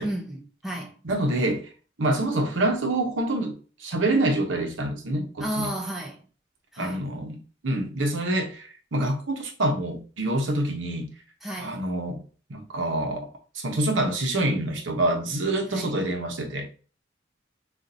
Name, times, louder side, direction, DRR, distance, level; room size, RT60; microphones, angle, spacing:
voice 1, 0.0-1.0 5.4-6.2 6.7-7.0 11.4-11.7 15.7-15.9, right 1 dB, ahead, 0.8 m, -32 dB
voice 2, 1.0-1.7 2.0-5.7 6.8-11.1 11.6-12.2 12.5-13.3 13.5-16.7, right 1 dB, 85° right, 0.9 m, -26 dB
6.5 x 2.6 x 2.7 m
head